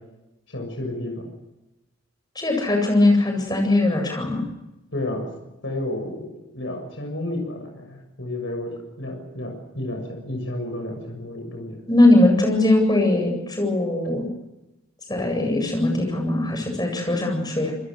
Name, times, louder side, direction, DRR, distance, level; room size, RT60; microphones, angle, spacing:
voice 1, 0.5-1.3 4.9-5.3 5.6-11.8, left 1 dB, 60° left, 2 dB, 6.9 m, -31 dB
voice 2, 2.4-4.4 11.9-14.3 15.1-17.7, left 2 dB, 20° left, 3 dB, 7.9 m, -20 dB
28.5 x 22.0 x 6.6 m, 0.98 s
head